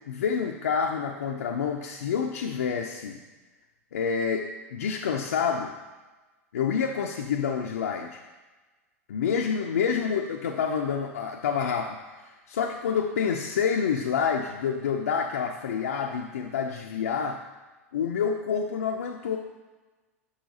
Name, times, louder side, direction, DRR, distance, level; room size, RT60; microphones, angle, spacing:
voice 1, 0.1-3.2 3.9-5.7 6.5-8.2 9.1-17.4 17.9-19.4, left 6 dB, 75° left, 2 dB, 0.4 m, -28 dB
6.4 x 5.5 x 2.7 m, 1.2 s
hypercardioid pair, 95°, 8 cm